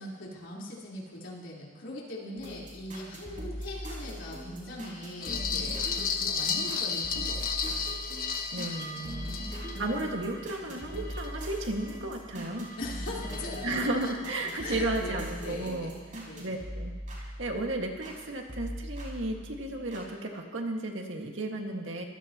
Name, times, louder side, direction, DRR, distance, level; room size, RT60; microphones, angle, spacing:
voice 1, 0.0-7.9 12.8-13.7 14.6-15.9 16.2-16.6, left 1 dB, 70° left, -5 dB, 4.4 m, -41 dB
sound 1, 2.4-18.2 18.5-20.1, equal, 45° right, 5.0 m, -40 dB
sound 2, 5.2-11.9 12.3-14.1, left 5 dB, 50° left, 1.4 m, -34 dB
voice 2, 8.5-12.7 13.6-16.9 17.4-22.0, right 2 dB, 70° right, 1 dB, 2.1 m, -34 dB
25.0 x 16.5 x 3.1 m, 1.5 s
head